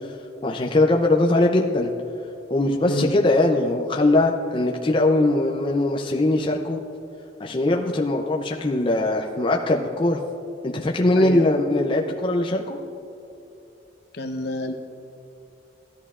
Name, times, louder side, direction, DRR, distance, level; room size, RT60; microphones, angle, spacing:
voice 1, 0.4-1.9 2.5-6.8 7.4-10.2 10.6-12.8, left 2 dB, 30° left, 1 dB, 0.5 m, -21 dB
voice 2, 14.1-14.7, equal, 65° left, 6 dB, 0.8 m, -27 dB
15.5 x 11.0 x 2.4 m, 2.7 s
head